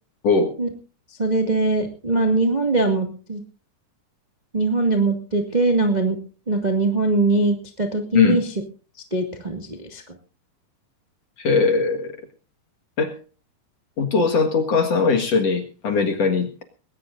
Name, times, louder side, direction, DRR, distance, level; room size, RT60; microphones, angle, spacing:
voice 1, 1.2-3.4 4.5-6.2 6.5-8.5 9.1-10.0, right 3 dB, 30° right, 4 dB, 0.7 m, -21 dB
voice 2, 11.4-12.1 13.0-13.2 14.0-16.6, left 4 dB, 50° left, 5 dB, 2.1 m, -20 dB
20.5 x 18.0 x 2.6 m, 0.36 s
omnidirectional pair, 4.7 m